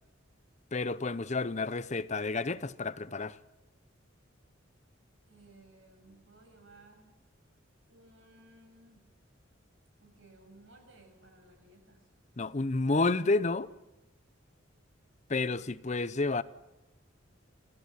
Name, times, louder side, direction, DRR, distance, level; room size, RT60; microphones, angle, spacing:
voice 1, 0.7-3.4 12.4-13.7 15.3-16.4, left 3 dB, 35° left, 0.7 m, -30 dB
voice 2, 5.3-7.2 7.9-9.0 10.0-12.1 15.5-15.6, right 2 dB, 75° right, 7.3 m, -58 dB
28.5 x 15.0 x 9.8 m
head